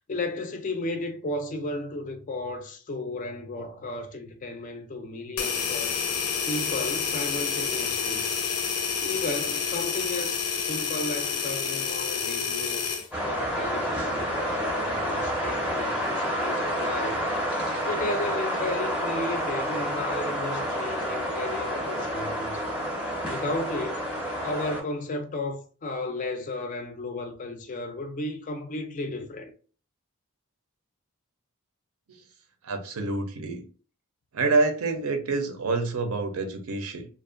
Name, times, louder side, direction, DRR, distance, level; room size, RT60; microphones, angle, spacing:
voice 1, 0.1-5.9 6.5-8.3 9.0-12.9 13.2-17.2 17.8-22.7 23.3-24.1 24.4-29.5, left 2 dB, 35° left, 0.4 m, -34 dB
sound 1, 5.4-13.1, left 6 dB, 85° left, 0.5 m, -29 dB
sound 2, 13.1-24.8, equal, 5° right, 0.6 m, -29 dB
voice 2, 32.6-33.6 34.3-37.1, right 3 dB, 70° right, 0.5 m, -27 dB
2.5 x 2.1 x 2.4 m
head